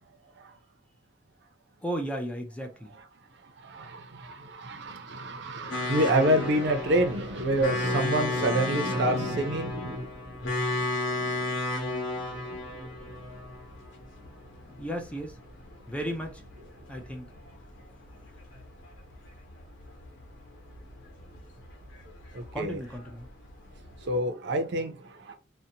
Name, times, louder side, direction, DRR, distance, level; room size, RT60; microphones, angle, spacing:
voice 1, 1.8-2.9 14.8-15.4 15.9-16.4 16.9-17.3 22.5-23.3, equal, 5° left, 0.4 m, -34 dB
voice 2, 3.6-11.6 12.1-13.3 22.3-22.8 24.1-25.3, right 1 dB, 65° right, 0.5 m, -29 dB
sound 1, 5.7-24.2, left 2 dB, 70° left, 1.0 m, -35 dB
2.6 x 2.1 x 2.7 m
head